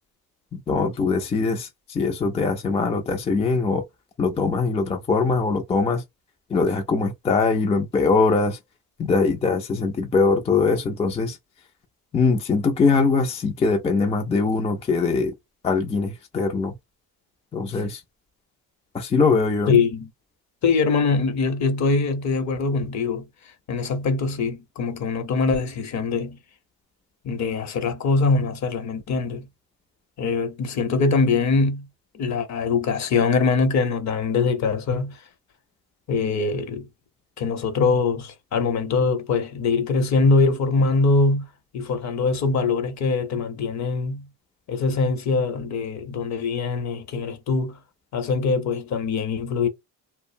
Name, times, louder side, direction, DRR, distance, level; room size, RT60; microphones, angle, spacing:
voice 1, 0.5-3.8 4.2-6.0 6.5-8.6 9.0-11.4 12.1-15.3 15.6-16.7 17.5-18.0 18.9-19.7, left 4 dB, 20° left, 0.3 m, -22 dB
voice 2, 19.7-20.1 20.6-23.3 23.7-26.4 27.2-29.5 30.2-31.9 32.1-35.2 36.1-36.9 37.4-41.5 41.7-44.3 44.7-47.8 48.1-49.7, left 4 dB, 50° left, 0.7 m, -23 dB
2.6 x 2.0 x 2.5 m
cardioid pair, 120°, 37 cm